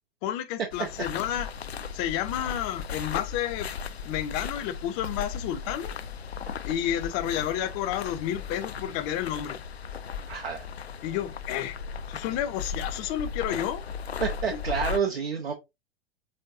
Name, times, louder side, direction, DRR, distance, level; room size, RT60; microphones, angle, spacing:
voice 1, 0.2-1.5 1.9-3.7 4.0-5.9 6.6-9.6 11.0-11.8 12.1-13.8 14.5-14.6, left 11 dB, 30° left, 0.6 m, -30 dB
sound 1, 0.7-15.0, left 6 dB, 85° left, 0.5 m, -36 dB
voice 2, 10.3-10.6 14.2-15.5, right 6 dB, 75° right, 0.9 m, -29 dB
5.4 x 3.3 x 2.6 m
figure-of-eight pair, 100°, 31 cm